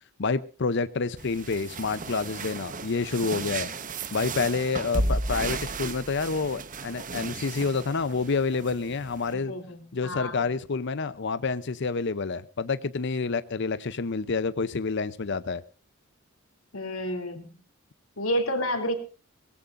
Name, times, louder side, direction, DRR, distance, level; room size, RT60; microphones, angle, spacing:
voice 1, 0.2-3.7 4.1-9.5 9.9-15.6, left 4 dB, 60° left, 14 dB, 0.7 m, -28 dB
sound 1, 1.2-9.3, right 2 dB, 40° right, 1.1 m, -34 dB
voice 2, 9.3-10.4 16.7-17.5 18.2-18.9, equal, 85° left, 7 dB, 3.1 m, -30 dB
22.5 x 18.5 x 2.6 m, 0.33 s
head